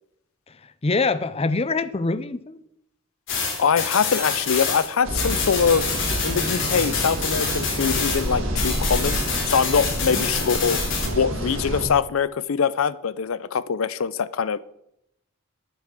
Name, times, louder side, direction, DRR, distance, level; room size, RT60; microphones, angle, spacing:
voice 1, 0.5-2.6 10.0-10.2, left 3 dB, 30° left, 15 dB, 0.5 m, -25 dB
sound 1, 3.3-8.3 8.6-11.1, left 5 dB, 65° left, 3.2 m, -27 dB
voice 2, 3.6-5.9 6.2-9.2 9.4-10.8 11.1-14.6, left 6 dB, 90° left, 17 dB, 0.5 m, -23 dB
sound 2, 5.0-11.9, right 1 dB, 65° right, 2.0 m, -28 dB
9.5 x 5.9 x 7.4 m, 0.78 s
head